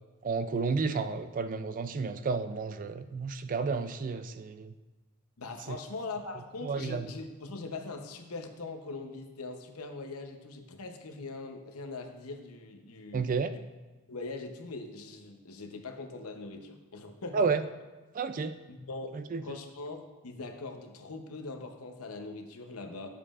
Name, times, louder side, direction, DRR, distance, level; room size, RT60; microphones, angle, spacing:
voice 1, 0.2-4.7 5.7-5.8 6.6-7.1 13.1-13.5 17.3-17.6 18.1-18.6 19.1-19.6, right 4 dB, 35° right, 11 dB, 0.3 m, -31 dB
voice 2, 5.4-13.6 14.1-17.5 18.7-23.1, left 3 dB, 75° left, 5 dB, 0.8 m, -41 dB
10.5 x 7.2 x 2.5 m, 1.2 s
head